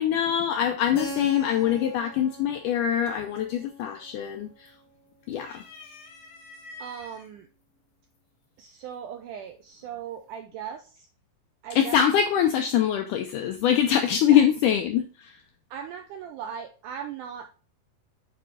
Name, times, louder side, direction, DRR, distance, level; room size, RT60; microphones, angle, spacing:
voice 1, 0.0-4.7 5.3-5.6 11.8-15.4, left 9 dB, 90° left, 1.8 m, -24 dB
Keyboard (musical), 1.0-5.5, equal, 35° left, 1.8 m, -43 dB
sound 1, 3.5-3.9 4.2-4.9 5.3-7.3 8.1-8.2 9.5-9.9, left 2 dB, 65° left, 3.2 m, -47 dB
voice 2, 6.8-7.5 8.6-11.1 11.6-12.0 14.3-14.4 15.7-17.5, right 8 dB, 90° right, 1.8 m, -38 dB
8.6 x 4.7 x 3.8 m
omnidirectional pair, 4.4 m